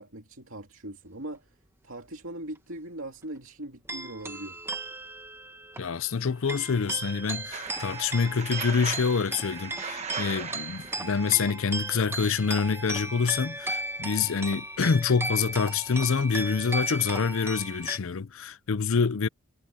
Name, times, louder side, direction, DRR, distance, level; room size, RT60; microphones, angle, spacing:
voice 1, 0.0-1.5 1.8-4.6, right 1 dB, 65° right, 2.6 m, -40 dB
sound 1, 3.9-18.0, right 2 dB, 10° right, 1.2 m, -36 dB
voice 2, 5.8-19.3, left 5 dB, 65° left, 0.5 m, -26 dB
sound 2, 7.5-11.3, right 6 dB, 30° right, 1.1 m, -38 dB
head